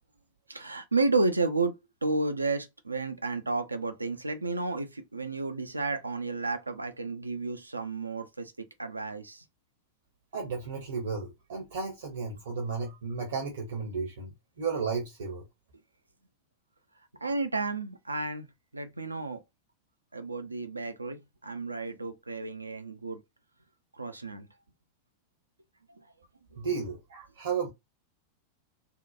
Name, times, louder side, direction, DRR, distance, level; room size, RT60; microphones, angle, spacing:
voice 1, 0.5-9.4 17.2-18.5 18.7-19.4 20.1-23.2 24.0-24.5, right 3 dB, 80° right, 0.3 m, -32 dB
voice 2, 10.3-14.3 14.6-15.4 26.6-27.7, right 5 dB, 60° right, 0.7 m, -33 dB
2.7 x 2.1 x 2.3 m
figure-of-eight pair, 90°, 0 cm